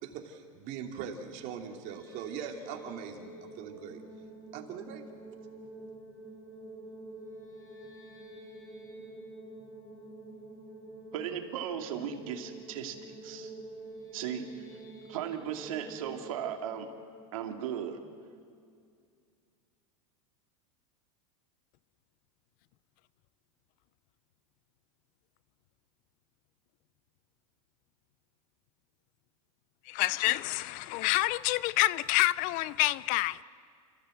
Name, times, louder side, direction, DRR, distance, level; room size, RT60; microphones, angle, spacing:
voice 1, 0.0-4.0 4.5-5.0, right 7 dB, 50° right, 2.8 m, -41 dB
sound 1, 1.7-18.6, right 2 dB, 20° left, 6.9 m, -48 dB
voice 2, 11.1-13.5 14.1-14.5 15.1-16.9 17.3-18.0, right 9 dB, 80° right, 2.5 m, -36 dB
voice 3, 29.9-33.4, left 18 dB, 50° left, 0.5 m, -28 dB
29.5 x 14.5 x 7.9 m
supercardioid pair, 125°, 18 cm